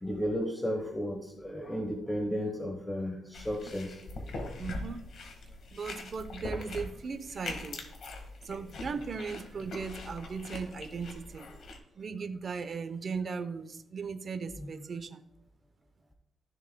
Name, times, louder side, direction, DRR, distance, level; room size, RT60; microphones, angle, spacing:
voice 1, 0.0-4.0 14.6-14.7, equal, 10° left, 3 dB, 1.0 m, -34 dB
sound 1, 3.3-11.8, left 2 dB, 65° left, 1.7 m, -42 dB
voice 2, 4.6-5.1 5.7-7.8 8.4-11.5 12.0-15.2, right 5 dB, 45° right, 10 dB, 0.7 m, -37 dB
14.0 x 7.0 x 2.2 m, 0.82 s
cardioid pair, 120°, 0 cm